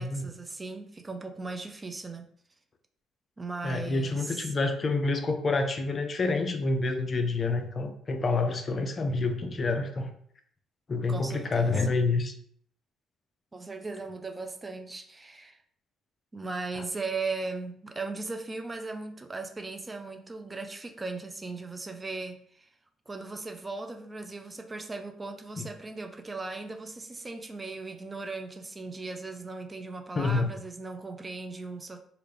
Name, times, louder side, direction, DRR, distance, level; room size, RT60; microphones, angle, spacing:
voice 1, 0.0-2.3 3.4-4.4 11.1-11.8 13.5-15.6 16.3-22.7 23.1-32.0, right 3 dB, 25° right, 5 dB, 0.5 m, -38 dB
voice 2, 3.6-10.1 10.9-12.3 25.6-25.7 30.2-30.5, left 3 dB, 40° left, 6 dB, 0.5 m, -28 dB
3.3 x 2.4 x 3.2 m, 0.62 s
hypercardioid pair, 55°, 0 cm